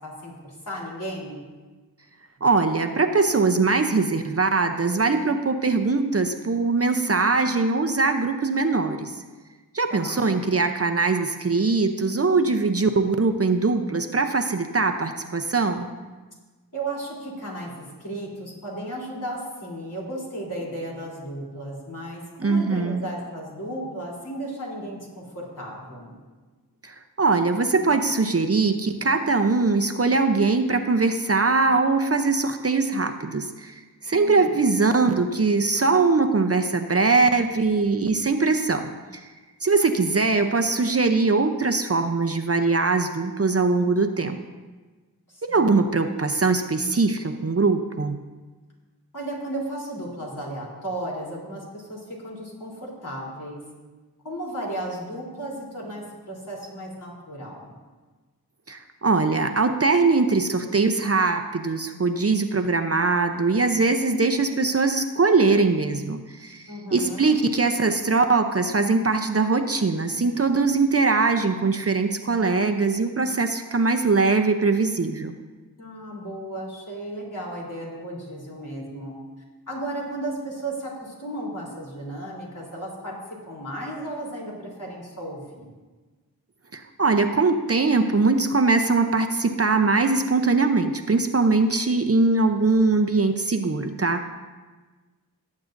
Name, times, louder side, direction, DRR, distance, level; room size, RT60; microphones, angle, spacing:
voice 1, 0.0-1.4 9.9-10.3 16.7-26.1 34.1-34.6 45.3-45.7 49.1-53.6 54.2-57.7 66.7-67.4 75.8-79.1 79.7-83.2 83.4-85.7, right 1 dB, 55° left, -4 dB, 3.5 m, -34 dB
voice 2, 2.4-9.2 9.7-15.9 22.4-23.0 26.8-38.9 39.6-44.4 45.4-48.2 58.7-66.6 66.9-75.3 86.7-94.3, right 3 dB, 40° right, 6 dB, 0.7 m, -21 dB
18.0 x 8.4 x 2.6 m, 1.3 s
wide cardioid pair, 70°, 37 cm